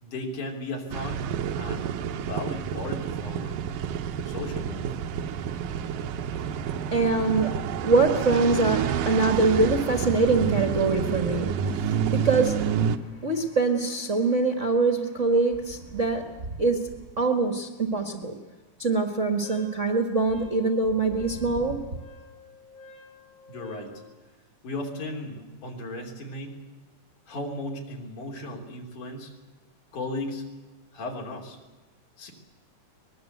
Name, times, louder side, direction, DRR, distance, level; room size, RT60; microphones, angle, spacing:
voice 1, 0.0-1.2 1.6-3.6 4.2-4.9 23.5-24.0 24.6-26.6 27.3-29.3 29.9-30.5 30.9-31.6 32.2-32.3, left 2 dB, 65° left, 1 dB, 4.6 m, -36 dB
sound 1, 0.9-13.0, right 8 dB, 80° right, 2.6 m, -29 dB
voice 2, 6.9-7.5 7.8-12.6 13.2-16.9 17.2-18.4 18.8-21.8, right 3 dB, 35° right, 4 dB, 1.3 m, -24 dB
Wind instrument woodwind instrument, 19.4-24.0, left 1 dB, 90° left, 8.7 m, -50 dB
23.5 x 21.0 x 8.0 m, 1.2 s
omnidirectional pair, 3.9 m